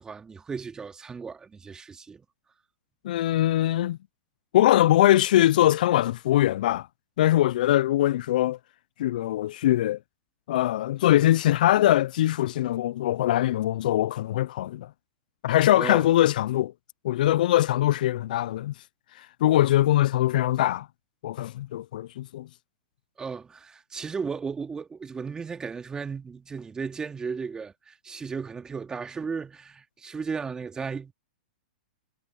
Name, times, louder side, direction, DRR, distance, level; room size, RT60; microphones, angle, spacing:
voice 1, 0.0-2.2 15.7-16.1 23.2-31.1, right 5 dB, 15° right, 2.7 m, -35 dB
voice 2, 3.0-4.0 4.5-6.9 7.2-8.6 9.0-10.0 10.5-14.9 15.4-16.7 17.0-18.7 19.2-20.9 21.2-22.5, left 13 dB, 65° left, 0.4 m, -22 dB
hypercardioid pair, 120°, 5 cm